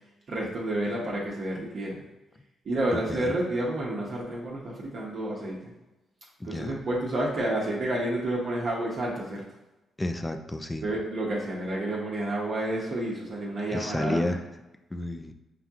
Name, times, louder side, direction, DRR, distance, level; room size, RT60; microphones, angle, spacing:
voice 1, 0.3-2.0 2.6-5.6 6.4-9.4 10.8-14.3, right 1 dB, 55° right, -4 dB, 1.0 m, -30 dB
voice 2, 6.4-6.7 10.0-10.8 13.7-14.4 14.9-15.3, left 1 dB, 15° left, 6 dB, 0.5 m, -30 dB
5.7 x 2.3 x 2.8 m, 1.0 s
supercardioid pair, 55°, 0 cm